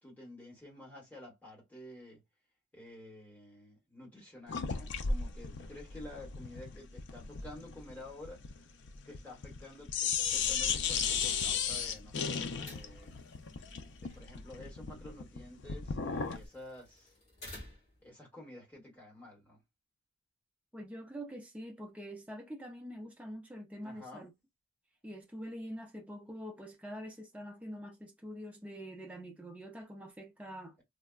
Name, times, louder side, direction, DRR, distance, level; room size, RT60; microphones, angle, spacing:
voice 1, 0.0-2.2 2.7-8.5 9.1-13.2 14.0-17.1 18.0-19.6 23.8-24.3, left 1 dB, 10° left, 1.2 m, -50 dB
sound 1, 4.5-9.6 9.9-16.5, left 6 dB, 65° left, 0.4 m, -35 dB
sound 2, 11.1-18.1, left 1 dB, 35° left, 1.8 m, -55 dB
voice 2, 20.7-24.3 25.0-30.8, equal, 5° right, 0.4 m, -45 dB
3.3 x 2.1 x 2.3 m
head